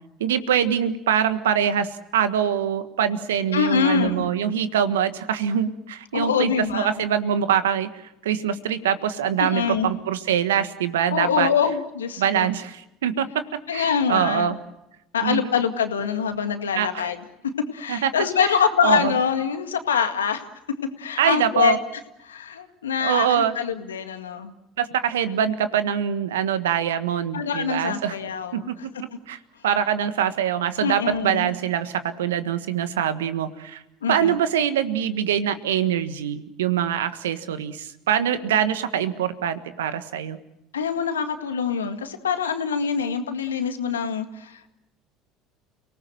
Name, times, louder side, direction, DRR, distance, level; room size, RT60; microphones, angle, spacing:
voice 1, 0.2-11.5 12.2-13.4 13.7-14.6 15.2-15.5 16.7-17.1 17.9-18.1 18.4-18.6 18.8-19.2 21.2-21.8 23.0-23.5 24.8-28.1 28.5-28.7 29.3-29.4 29.6-33.8 34.1-40.4, right 9 dB, 80° right, 11 dB, 1.5 m, -24 dB
voice 2, 3.5-4.2 6.1-7.1 9.4-9.9 11.1-12.5 13.7-14.5 15.1-17.2 17.7-20.4 21.0-21.8 22.2-24.5 27.3-28.6 30.8-31.5 34.0-34.4 40.7-44.7, left 7 dB, 90° left, 7 dB, 2.0 m, -24 dB
29.5 x 19.0 x 7.7 m, 0.88 s
hypercardioid pair, 70°, 0 cm